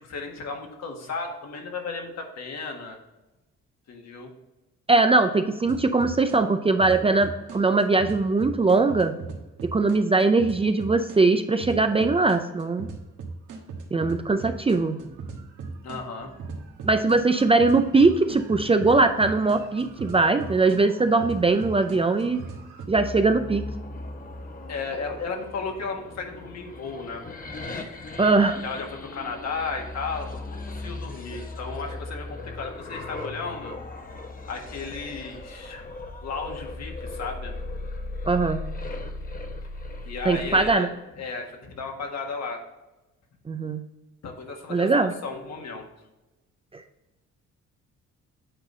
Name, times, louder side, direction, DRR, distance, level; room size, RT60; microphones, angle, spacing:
voice 1, 0.0-3.0 3.9-4.3 15.8-16.3 24.7-27.2 28.6-33.7 34.5-35.9 36.2-37.5 40.0-42.6 44.2-45.9, left 4 dB, 60° left, 2 dB, 1.6 m, -34 dB
voice 2, 4.9-9.2 9.6-12.9 13.9-15.0 16.8-22.4 22.9-23.7 28.2-28.6 38.3-38.6 40.3-40.9 43.5-43.8 44.7-45.1, right 3 dB, 20° right, 8 dB, 0.4 m, -21 dB
sound 1, 5.6-6.4 6.8-11.2 11.6-22.9, right 4 dB, 80° right, 1.4 m, -38 dB
sound 2, 22.9-40.7, left 2 dB, 30° left, 1.0 m, -37 dB
8.9 x 4.0 x 3.8 m, 1.0 s
cardioid pair, 90°, 30 cm